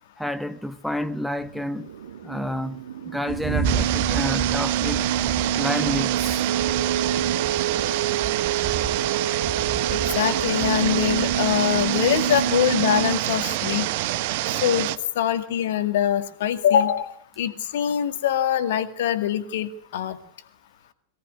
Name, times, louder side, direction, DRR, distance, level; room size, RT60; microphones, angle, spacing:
voice 1, 0.2-1.9 2.2-5.0 5.5-6.5, equal, ahead, 1.1 m, -29 dB
sound 1, 1.4-13.2, right 8 dB, 65° right, 1.6 m, -28 dB
sound 2, 3.3-14.5, right 5 dB, 30° right, 3.2 m, -34 dB
sound 3, 3.6-15.0, right 16 dB, 50° right, 1.1 m, -27 dB
voice 2, 9.9-13.9 14.6-14.9 15.2-20.2, left 10 dB, 55° left, 2.1 m, -23 dB
23.0 x 18.0 x 9.6 m
figure-of-eight pair, 90°, 0 cm